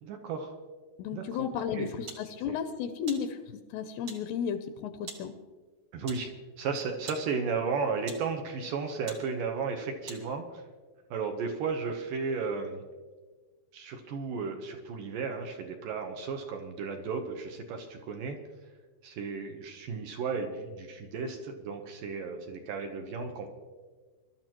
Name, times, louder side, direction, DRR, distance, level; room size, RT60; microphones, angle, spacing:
voice 1, 0.0-0.6 1.1-1.5 1.7-1.9 2.5-2.6 5.9-6.3 6.6-10.6 11.1-12.8 13.7-18.4 19.0-23.5, right 5 dB, 75° right, 5 dB, 2.1 m, -34 dB
voice 2, 1.0-3.4 3.7-5.3, left 7 dB, 85° left, 8 dB, 2.6 m, -33 dB
sound 1, 2.1-2.3 3.1-3.3 4.1-4.3 5.1-5.3 6.1-6.3 7.1-7.3 8.0-8.3 9.1-9.3 10.1-10.2, right 4 dB, 55° right, 1.4 m, -44 dB
23.5 x 12.5 x 3.0 m, 1.4 s
omnidirectional pair, 5.0 m